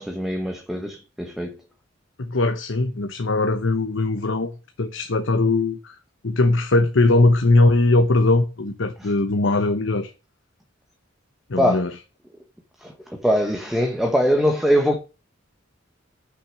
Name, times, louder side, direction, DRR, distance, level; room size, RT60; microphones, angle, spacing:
voice 1, 0.0-1.6 9.0-9.1 11.6-11.8 12.8-15.0, equal, ahead, 1.0 m, -22 dB
voice 2, 2.2-4.5 4.8-5.9 6.2-10.1 11.5-11.9, left 2 dB, 75° left, 0.9 m, -20 dB
6.6 x 6.0 x 7.2 m
head